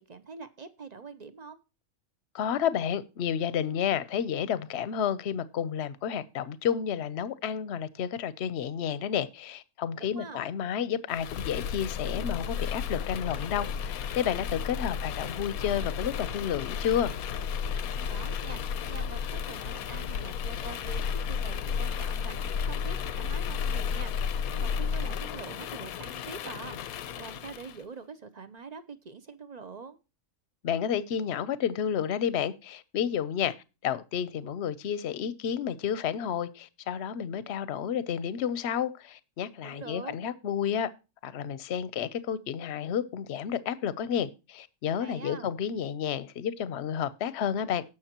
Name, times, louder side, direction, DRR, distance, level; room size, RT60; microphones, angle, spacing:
voice 1, 0.0-1.6 10.0-10.4 18.1-18.6 18.9-30.0 39.6-40.2 45.0-45.5, right 4 dB, 45° right, 0.6 m, -44 dB
voice 2, 2.3-17.1 30.6-33.6 33.8-40.9 41.2-47.8, left 8 dB, 55° left, 0.9 m, -31 dB
sound 1, 11.1-27.8, left 7 dB, 85° left, 1.2 m, -33 dB
18.5 x 6.3 x 2.9 m
omnidirectional pair, 1.5 m